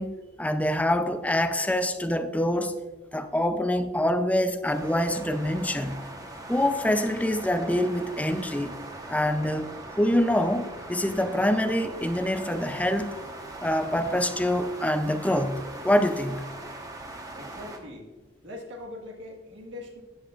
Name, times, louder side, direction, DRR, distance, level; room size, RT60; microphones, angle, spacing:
voice 1, 0.0-2.8 3.1-6.1 6.5-8.8 9.1-13.2 13.6-16.5, left 1 dB, 10° left, 0.5 m, -25 dB
sound 1, 4.6-17.8, right 2 dB, 20° right, 1.1 m, -41 dB
voice 2, 17.3-18.1 18.4-20.0, left 2 dB, 70° right, 1.7 m, -41 dB
14.5 x 9.7 x 2.5 m
head